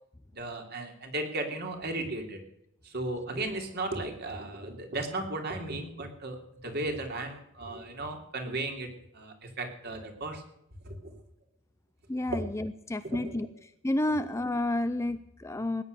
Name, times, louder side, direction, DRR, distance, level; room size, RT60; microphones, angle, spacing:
voice 1, 0.3-2.4 2.8-6.4 6.6-8.9 9.1-10.4 10.8-11.1 12.3-12.4 13.1-13.3 14.1-14.2, right 2 dB, 50° right, 4 dB, 3.1 m, -35 dB
voice 2, 12.1-13.5 13.8-15.8, left 1 dB, 15° left, 11 dB, 0.5 m, -30 dB
19.0 x 10.0 x 6.7 m, 0.77 s
head